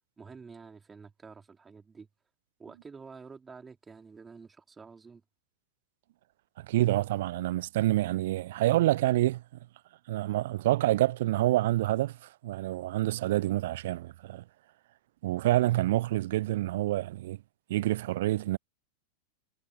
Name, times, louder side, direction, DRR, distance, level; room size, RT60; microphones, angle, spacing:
voice 1, 0.2-2.1 2.6-5.2, right 5 dB, 15° right, 3.9 m, -49 dB
voice 2, 6.6-9.4 10.1-12.2 12.4-14.4 15.2-17.4 17.7-18.6, right 15 dB, 55° right, 0.4 m, -27 dB
figure-of-eight pair, 90°, 0 cm